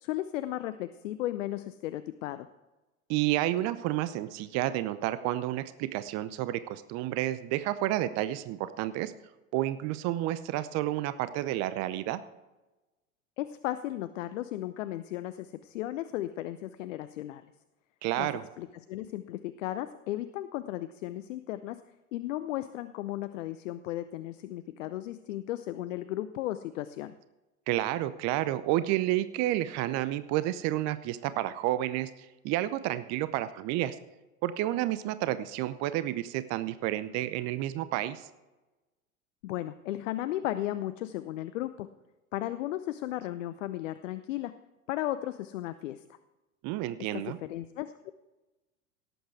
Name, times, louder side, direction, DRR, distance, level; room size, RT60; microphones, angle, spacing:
voice 1, 0.0-2.5 13.4-17.4 18.2-18.3 18.6-21.8 22.1-27.1 39.4-41.9 42.3-44.5 44.9-46.0 47.0-48.1, left 14 dB, 60° left, 12 dB, 0.7 m, -35 dB
voice 2, 3.1-9.1 9.5-12.2 18.0-18.4 27.7-34.0 34.4-38.3 46.6-47.4, right 14 dB, 40° right, 14 dB, 0.7 m, -30 dB
17.5 x 8.1 x 4.6 m, 1.1 s
figure-of-eight pair, 85°, 43 cm